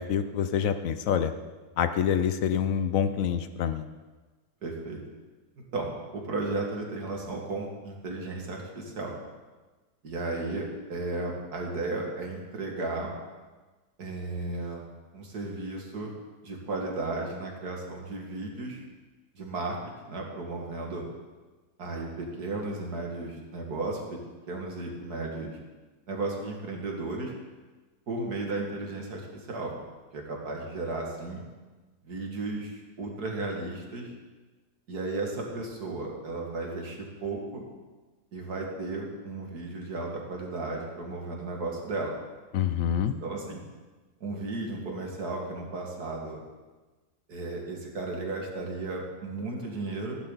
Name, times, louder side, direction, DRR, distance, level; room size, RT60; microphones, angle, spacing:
voice 1, 0.0-1.3 1.8-3.9 42.5-43.1, left 8 dB, 65° left, 10 dB, 0.9 m, -26 dB
voice 2, 4.6-5.0 5.7-9.2 10.0-13.1 14.0-14.8 15.1-16.1 16.4-18.8 19.3-19.8 20.0-21.1 21.8-24.2 24.5-25.6 26.1-27.3 28.1-29.8 30.1-31.4 32.0-34.1 34.9-37.6 38.3-42.2 43.0-43.6 44.2-46.4 47.3-50.2, right 2 dB, 65° right, 0 dB, 2.5 m, -34 dB
15.0 x 11.5 x 4.0 m, 1.3 s
omnidirectional pair, 1.8 m